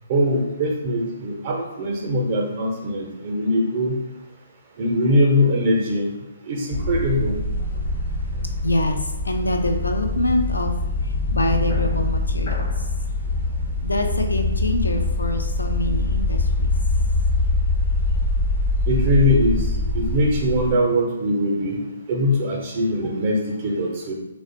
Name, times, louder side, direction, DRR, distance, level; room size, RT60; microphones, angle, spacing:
voice 1, 0.1-4.0 4.8-6.1 6.5-7.4 18.9-19.7 19.9-21.8 22.1-24.1, left 1 dB, 45° right, -1 dB, 0.5 m, -21 dB
sound 1, 6.7-20.7, left 2 dB, 60° left, 0.7 m, -24 dB
voice 2, 8.6-10.7 11.0-12.9 13.8-16.7, left 1 dB, 90° left, 4 dB, 0.3 m, -25 dB
2.4 x 2.0 x 2.6 m, 0.94 s
figure-of-eight pair, 140°, 0 cm